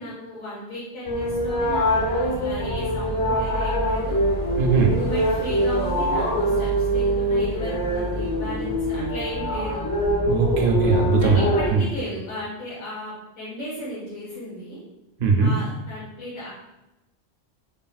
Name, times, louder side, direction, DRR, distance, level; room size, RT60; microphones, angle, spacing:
voice 1, 0.0-4.2 4.9-9.8 11.2-14.8 15.4-16.5, equal, 70° left, -7 dB, 1.1 m, -35 dB
sound 1, 1.0-11.7, equal, 40° left, 0.5 m, -24 dB
voice 2, 4.6-4.9 10.3-11.8 15.2-15.5, right 5 dB, 60° right, 1 dB, 0.6 m, -20 dB
3.5 x 2.0 x 2.3 m, 0.93 s
omnidirectional pair, 1.1 m